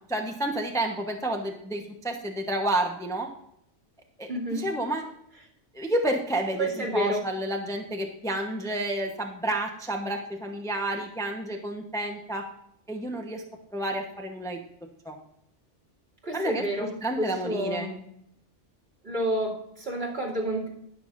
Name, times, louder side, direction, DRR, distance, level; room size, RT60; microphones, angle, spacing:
voice 1, 0.1-3.3 4.2-5.0 5.7-6.7 6.9-12.4 12.9-13.4 13.7-14.6 15.0-15.2 16.3-16.6 17.0-17.9, right 1 dB, 5° left, 2 dB, 0.9 m, -30 dB
voice 2, 4.3-4.7 6.6-7.2 16.2-18.0 19.0-20.7, right 1 dB, 55° right, -2 dB, 3.1 m, -30 dB
19.5 x 7.0 x 2.6 m, 0.75 s
omnidirectional pair, 1.2 m